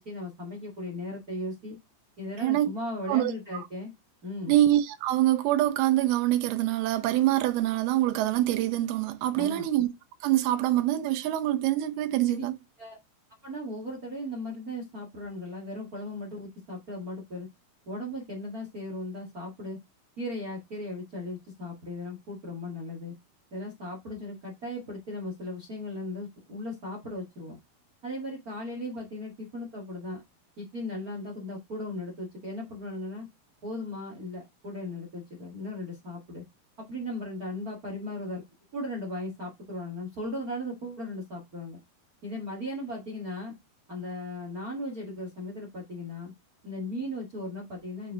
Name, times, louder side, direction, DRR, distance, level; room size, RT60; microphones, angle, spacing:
voice 1, 0.0-1.8 2.2-3.9 4.2-4.5 9.3-9.7 12.3-12.4 12.8-13.0 13.4-17.5 17.9-19.8 20.2-23.1 23.5-27.6 28.0-30.2 30.6-33.3 33.6-36.4 36.8-38.4 38.7-41.8 42.2-43.6 43.9-46.3 46.6-48.1, left 1 dB, 35° right, 1.5 m, -37 dB
voice 2, 4.5-9.9 10.2-12.5, right 14 dB, 90° right, 2.8 m, -25 dB
6.8 x 4.8 x 3.6 m
omnidirectional pair, 4.3 m